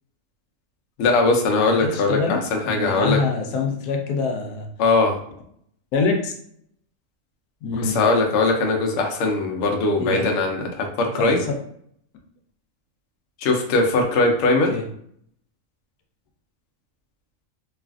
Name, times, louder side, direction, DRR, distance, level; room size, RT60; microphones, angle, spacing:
voice 1, 1.0-3.2 4.8-5.2 7.8-11.4 13.4-14.7, left 3 dB, 65° left, 2 dB, 0.8 m, -20 dB
voice 2, 1.8-4.7 5.9-6.3 7.6-8.0 10.0-10.2 11.2-11.6 14.7-14.8, left 4 dB, 90° left, 3 dB, 1.1 m, -25 dB
3.1 x 2.4 x 2.4 m, 0.65 s
omnidirectional pair, 1.6 m